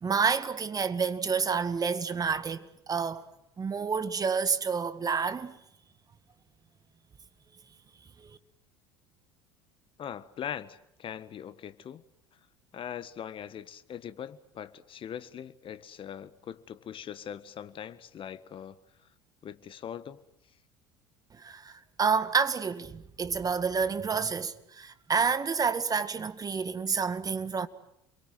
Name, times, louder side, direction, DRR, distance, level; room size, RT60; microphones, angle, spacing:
voice 1, 0.0-3.3 3.6-5.6 8.2-8.4 21.4-27.7, right 5 dB, 25° right, 2.0 m, -29 dB
voice 2, 10.0-12.0 12.7-18.8 19.4-20.2, left 9 dB, 40° left, 1.6 m, -41 dB
29.5 x 23.0 x 7.8 m
hypercardioid pair, 70°, 14 cm